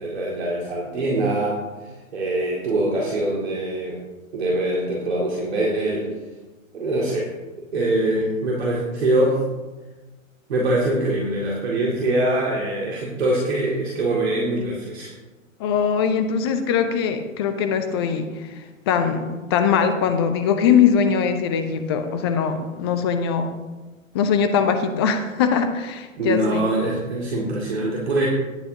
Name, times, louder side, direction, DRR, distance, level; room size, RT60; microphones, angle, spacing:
voice 1, 0.0-4.0 4.3-6.1 6.7-7.3 7.7-9.4 10.5-15.1 26.2-28.3, right 1 dB, 50° right, -4 dB, 2.3 m, -23 dB
voice 2, 15.6-23.5 24.1-26.6, left 7 dB, 20° left, 8 dB, 0.5 m, -21 dB
18.5 x 7.8 x 2.8 m, 1.2 s
figure-of-eight pair, 115°, 41 cm